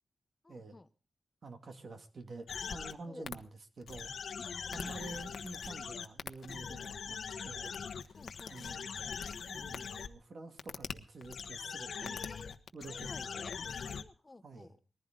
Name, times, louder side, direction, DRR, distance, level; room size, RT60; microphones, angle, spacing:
voice 1, 0.4-0.9 3.1-3.3 4.4-4.9 8.1-8.8 12.0-12.5 12.8-13.5 14.0-14.8, left 2 dB, 20° left, 12 dB, 0.7 m, -53 dB
voice 2, 1.4-3.5 3.8-4.1 4.7-7.8 8.1-8.2 8.5-8.8 9.5-12.2 12.7-13.5 13.9-14.0 14.4-14.7, right 3 dB, 50° right, 6 dB, 2.5 m, -48 dB
sound 1, 2.5-2.9 3.3-3.4 3.8-10.1 10.6-10.9 11.2-14.0, left 6 dB, 70° left, 1.2 m, -41 dB
21.0 x 15.0 x 3.8 m, 0.36 s
wide cardioid pair, 135°, 0 cm